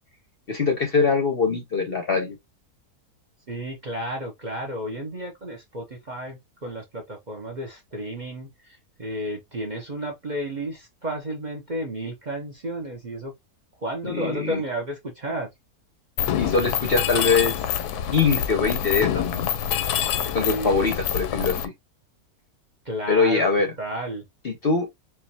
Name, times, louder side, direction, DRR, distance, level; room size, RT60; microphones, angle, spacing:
voice 1, 0.5-2.4 14.0-14.6 16.3-17.5 18.1-19.5 20.3-21.7 23.1-23.7 24.4-24.9, left 4 dB, 50° left, 0.8 m, -23 dB
voice 2, 3.5-13.3 13.8-15.5 20.4-21.0 22.8-23.5 23.8-24.2, right 1 dB, 35° right, 0.8 m, -32 dB
Mechanisms, 16.2-21.6, left 10 dB, 85° left, 1.1 m, -26 dB
4.6 x 2.5 x 2.7 m
omnidirectional pair, 1.6 m